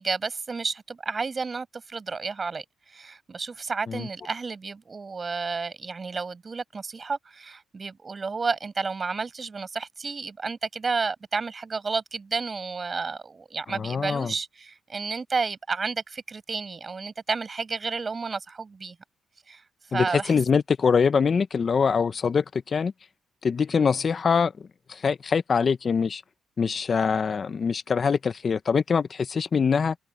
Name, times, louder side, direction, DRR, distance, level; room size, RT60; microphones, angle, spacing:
voice 1, 0.0-19.0 19.5-19.6 19.9-20.4, right 4 dB, 35° right, 7.8 m, -31 dB
voice 2, 13.7-14.3 19.9-22.9 23.4-24.5 24.9-26.2 26.6-29.9, left 6 dB, 40° left, 0.8 m, -24 dB
cardioid pair, 90°, 0 cm